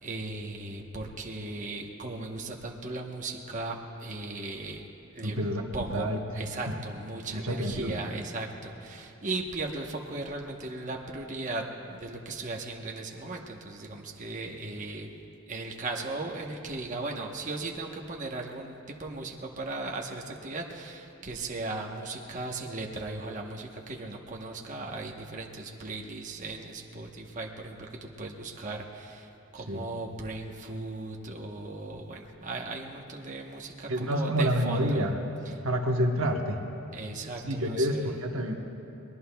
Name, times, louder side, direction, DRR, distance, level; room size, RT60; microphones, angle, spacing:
voice 1, 0.0-4.8 5.1-5.4 5.7-15.1 15.5-35.0 35.4-35.6 35.9-36.0 36.9-38.2, right 2 dB, 35° right, 0 dB, 1.0 m, -37 dB
voice 2, 5.2-6.4 7.3-8.0 29.7-29.9 33.9-35.1 35.6-36.6 37.4-38.6, equal, 70° right, 2 dB, 1.1 m, -28 dB
23.0 x 20.5 x 2.3 m, 2.9 s
head